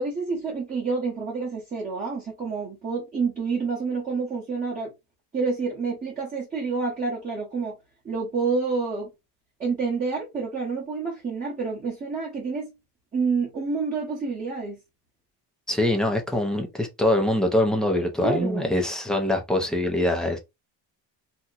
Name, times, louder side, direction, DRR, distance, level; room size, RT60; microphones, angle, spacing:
voice 1, 0.0-4.9 5.3-7.8 8.0-9.1 9.6-12.7 13.1-14.8 18.2-18.7, right 4 dB, 20° right, 0.9 m, -28 dB
voice 2, 15.7-20.4, left 1 dB, ahead, 0.5 m, -23 dB
2.9 x 2.2 x 3.8 m
cardioid pair, 170°, 46 cm